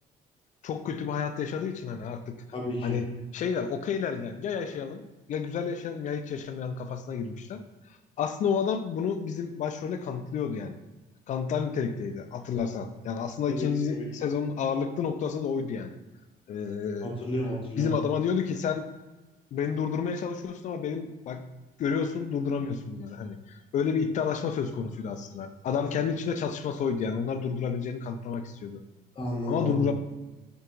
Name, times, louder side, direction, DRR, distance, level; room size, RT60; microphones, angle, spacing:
voice 1, 0.6-2.4 2.8-3.1 3.3-5.0 5.3-7.6 8.2-10.8 11.3-15.9 16.5-17.1 17.8-18.9 19.5-21.5 21.8-28.8 29.5-29.9, left 6 dB, 45° left, 9 dB, 0.4 m, -30 dB
voice 2, 2.5-3.0 13.5-14.0 17.0-17.9 29.2-29.9, equal, 30° left, -2 dB, 0.9 m, -32 dB
4.5 x 2.7 x 2.5 m, 1.1 s
cardioid pair, 110°, 17 cm